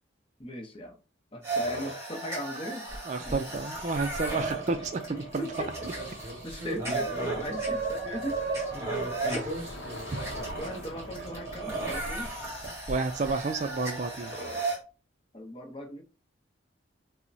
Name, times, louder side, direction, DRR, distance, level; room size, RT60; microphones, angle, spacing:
voice 1, 0.4-1.0 1.3-2.8 3.2-3.4 4.8-4.9 5.2-5.7 6.4-8.4 9.2-9.5 10.1-10.3 10.6-12.3 15.3-16.0, equal, 25° left, 4 dB, 0.7 m, -38 dB
sound 1, 1.4-14.8, right 2 dB, 15° right, 1.5 m, -34 dB
voice 2, 3.1-5.3 10.1-10.2 12.9-14.4, right 3 dB, 35° right, 7 dB, 0.3 m, -30 dB
Bicycle, 3.8-14.5, left 1 dB, 60° left, 0.7 m, -47 dB
5.5 x 2.1 x 2.6 m, 0.33 s
head